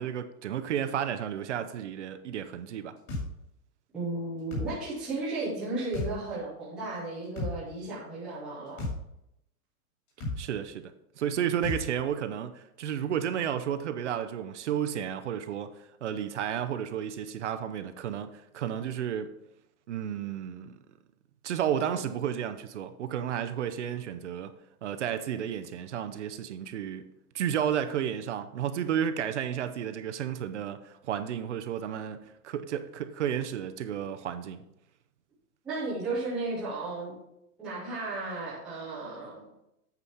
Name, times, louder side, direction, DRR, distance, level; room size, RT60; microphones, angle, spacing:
voice 1, 0.0-3.0 10.4-10.9 11.2-15.7 16.0-19.3 19.9-20.8 21.4-24.5 24.8-27.0 27.3-34.6, right 9 dB, 50° right, 0.7 m, -32 dB
sound 1, 3.1-3.3 4.5-4.7 5.9-6.1 7.4-7.6 8.8-9.0 10.2-10.4 11.6-11.8, left 2 dB, 30° left, 2.5 m, -32 dB
voice 2, 3.9-8.9 35.6-37.1 37.6-39.4, right 2 dB, ahead, 0.5 m, -34 dB
8.4 x 5.0 x 5.6 m
hypercardioid pair, 170°, 45 cm